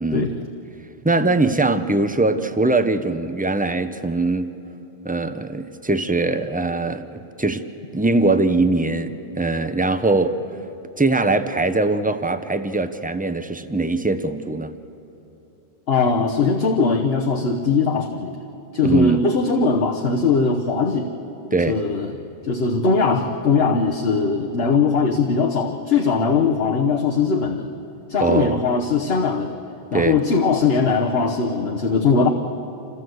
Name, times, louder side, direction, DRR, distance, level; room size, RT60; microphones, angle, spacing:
voice 1, 0.1-0.4 15.9-18.4 18.7-21.1 21.7-22.1 22.4-27.7 28.1-29.5 29.9-32.3, left 4 dB, 65° left, 2 dB, 1.2 m, -20 dB
voice 2, 1.0-4.5 5.0-7.6 7.9-10.4 11.0-14.8 18.8-19.2 21.5-21.8 28.2-28.6 29.9-30.2, right 2 dB, 10° right, 10 dB, 0.5 m, -21 dB
27.5 x 15.0 x 7.8 m, 2.9 s
omnidirectional pair, 1.1 m